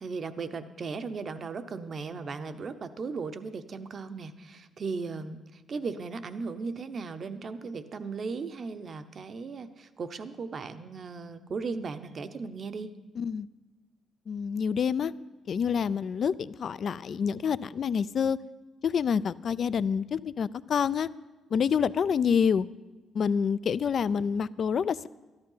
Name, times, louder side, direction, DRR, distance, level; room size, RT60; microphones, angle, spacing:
voice 1, 0.0-12.9, right 4 dB, 45° right, 10 dB, 0.8 m, -37 dB
voice 2, 13.2-13.5 14.3-15.1 15.5-18.4 18.8-21.1 21.5-22.7 23.1-25.1, left 7 dB, 55° left, 17 dB, 0.4 m, -27 dB
13.0 x 12.0 x 5.6 m, 1.1 s
cardioid pair, 90°, 0 cm